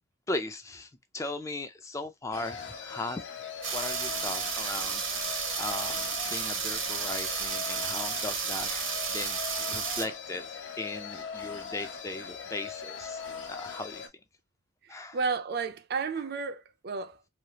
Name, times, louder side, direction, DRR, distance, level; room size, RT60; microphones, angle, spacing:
voice 1, 0.3-3.2 3.7-9.4 9.7-13.2 13.5-14.0 14.9-15.2, left 2 dB, 15° left, 0.3 m, -38 dB
sound 1, 2.3-14.1, left 6 dB, 70° left, 0.8 m, -40 dB
sound 2, 3.6-10.1, right 6 dB, 75° right, 0.8 m, -32 dB
voice 2, 14.8-17.3, right 5 dB, 55° right, 0.4 m, -33 dB
3.2 x 2.3 x 2.8 m
head